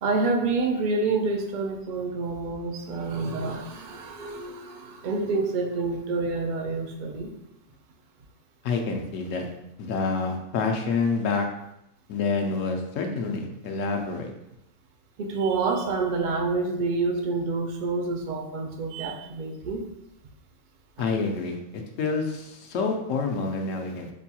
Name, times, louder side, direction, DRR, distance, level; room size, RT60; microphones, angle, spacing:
voice 1, 0.0-7.3 15.2-19.9 21.0-21.1, right 3 dB, 65° right, 3 dB, 0.5 m, -28 dB
voice 2, 8.6-9.5 9.8-11.5 12.1-14.3 21.0-24.1, left 4 dB, 80° left, 3 dB, 1.0 m, -28 dB
5.0 x 2.8 x 2.2 m, 0.83 s
omnidirectional pair, 1.3 m